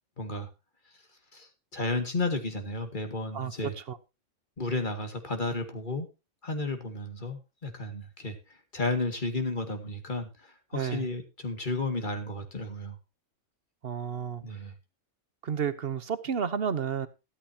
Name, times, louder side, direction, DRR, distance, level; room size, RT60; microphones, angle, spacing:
voice 1, 0.2-0.5 1.3-3.7 4.6-6.1 6.4-8.4 8.7-13.0 14.4-14.7, left 2 dB, 35° left, 2.2 m, -33 dB
voice 2, 10.7-11.1 13.8-14.4 15.4-17.1, right 7 dB, 50° right, 1.1 m, -31 dB
14.0 x 12.5 x 2.8 m
omnidirectional pair, 1.4 m